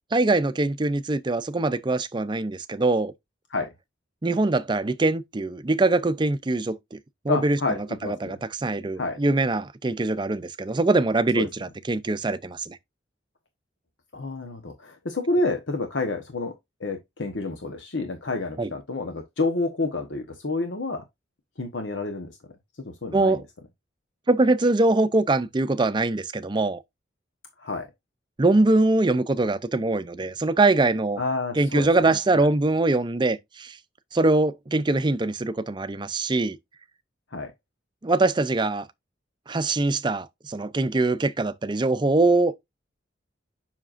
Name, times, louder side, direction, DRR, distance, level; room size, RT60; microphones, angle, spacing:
voice 1, 0.1-3.1 4.2-7.0 7.2-7.6 8.0-12.8 18.6-18.7 23.1-23.4 24.3-26.8 28.4-31.2 31.6-33.8 34.1-36.6 38.0-38.9 39.5-42.5, right 2 dB, 25° right, 0.5 m, -23 dB
voice 2, 7.3-8.3 9.0-9.2 11.3-11.5 14.1-16.5 16.8-21.0 21.6-22.3 22.8-23.4 27.6-27.9 31.2-32.5 37.3-37.5, left 3 dB, 85° left, 1.1 m, -29 dB
7.4 x 5.8 x 2.5 m
head